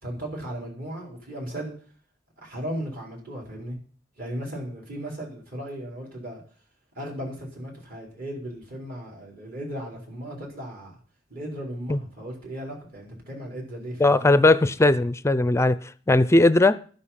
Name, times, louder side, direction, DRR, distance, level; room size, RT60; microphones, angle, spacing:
voice 1, 0.0-1.7 2.4-3.8 4.2-6.4 6.9-11.0 11.3-14.3, equal, 50° right, 4.5 m, -36 dB
voice 2, 14.0-15.8 16.1-16.8, left 2 dB, 15° left, 0.5 m, -18 dB
12.0 x 9.7 x 5.8 m
head